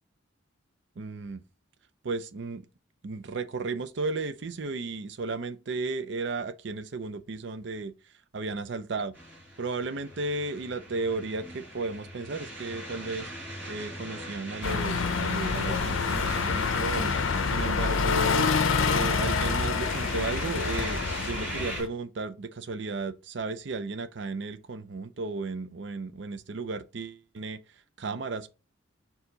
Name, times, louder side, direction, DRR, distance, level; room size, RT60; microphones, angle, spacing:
voice 1, 1.0-1.4 2.0-2.6 3.0-7.9 8.3-9.1 9.6-13.3 13.7-17.1 17.4-18.5 18.8-27.6 28.0-28.5, right 3 dB, 60° right, 0.5 m, -34 dB
sound 1, 9.1-21.8, right 1 dB, 5° right, 2.2 m, -40 dB
sound 2, 14.6-21.9, left 5 dB, 90° left, 0.6 m, -27 dB
4.6 x 2.8 x 3.9 m
head